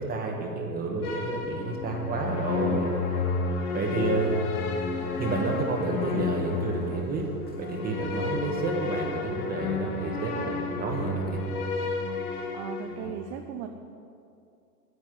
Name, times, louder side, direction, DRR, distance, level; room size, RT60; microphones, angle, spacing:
voice 1, 0.0-2.9 3.7-4.3 5.2-7.3 7.6-11.4, right 3 dB, 20° right, 1 dB, 2.0 m, -30 dB
sound 1, 1.0-13.1, left 4 dB, 70° left, 2.2 m, -31 dB
sound 2, 3.8-9.2, left 2 dB, 20° left, 2.5 m, -51 dB
voice 2, 12.5-13.7, right 8 dB, 35° right, 4 dB, 0.8 m, -37 dB
10.5 x 8.4 x 9.8 m, 2.5 s
supercardioid pair, 140°, 47 cm